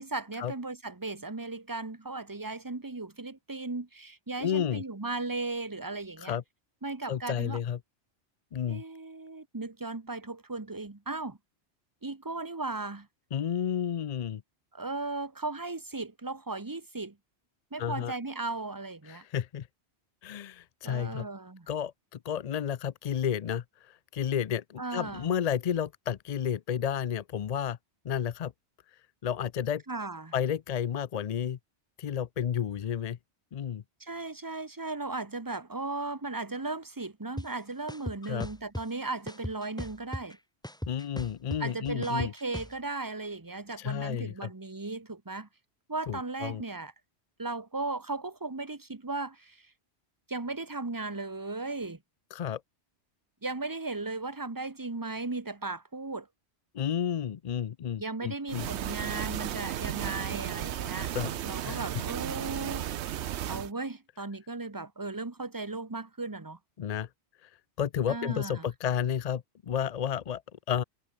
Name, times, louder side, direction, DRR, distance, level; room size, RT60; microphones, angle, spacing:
voice 1, 0.0-6.4 6.8-7.6 8.7-11.4 12.0-13.1 14.7-17.2 17.7-19.2 20.8-21.7 24.8-25.3 29.9-30.3 34.0-40.4 41.6-45.5 45.9-46.9 47.4-49.7 50.3-52.0 53.4-56.3 58.0-61.1 61.4-62.9 63.4-66.6 68.1-68.7, right 3 dB, 20° right, 1.2 m, -36 dB
voice 2, 4.4-4.8 6.2-6.4 7.1-7.8 8.5-8.8 13.3-14.4 17.8-18.1 19.1-19.7 20.2-21.3 21.7-27.8 28.0-28.5 29.2-29.8 30.3-31.6 32.0-33.2 33.5-33.8 38.3-38.5 40.9-42.3 43.8-44.5 46.1-46.6 52.3-52.6 56.7-58.7 61.1-61.3 61.6-61.8 66.8-67.1 67.4-67.5 67.8-70.4 70.7-70.8, left 9 dB, 50° left, 0.5 m, -31 dB
sound 1, 37.4-37.5 37.9-38.8 39.3-40.3 40.6-42.7, left 1 dB, 5° left, 1.0 m, -37 dB
sound 2, 58.5-63.7, right 11 dB, 80° right, 1.0 m, -34 dB
omnidirectional pair, 1.1 m